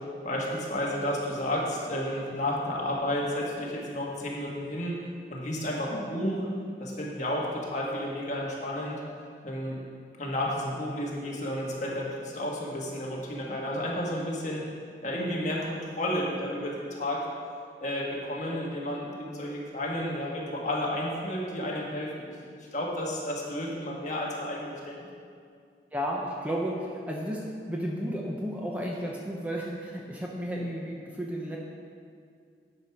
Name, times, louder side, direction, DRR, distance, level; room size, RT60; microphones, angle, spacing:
voice 1, 0.0-5.0 5.3-6.4 6.8-9.0 9.4-9.8 10.2-14.6 15.0-17.2 17.8-22.3 22.7-25.0, left 1 dB, 45° left, -3 dB, 1.6 m, -32 dB
voice 2, 25.9-31.6, equal, 10° right, -2 dB, 0.7 m, -33 dB
10.5 x 4.9 x 5.8 m, 2.2 s
head